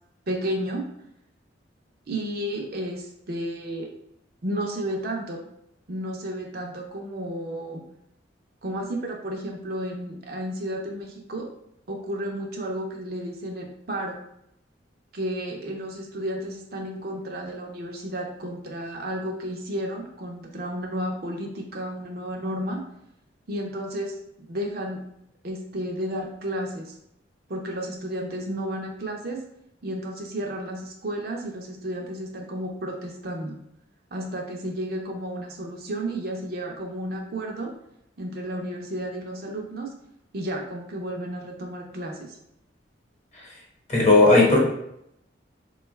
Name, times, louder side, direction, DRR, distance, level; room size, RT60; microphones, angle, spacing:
voice 1, 0.3-0.8 2.1-3.9 4.4-5.4 5.9-7.8 8.6-11.5 11.9-14.2 15.1-22.8 23.5-25.0 25.4-27.0 27.5-29.4 29.8-33.6 34.1-37.7 38.2-39.9 40.3-42.4, right 1 dB, 50° right, 0 dB, 0.6 m, -32 dB
voice 2, 43.9-44.6, left 2 dB, 35° left, -4 dB, 1.0 m, -15 dB
3.7 x 2.3 x 3.1 m, 0.78 s
head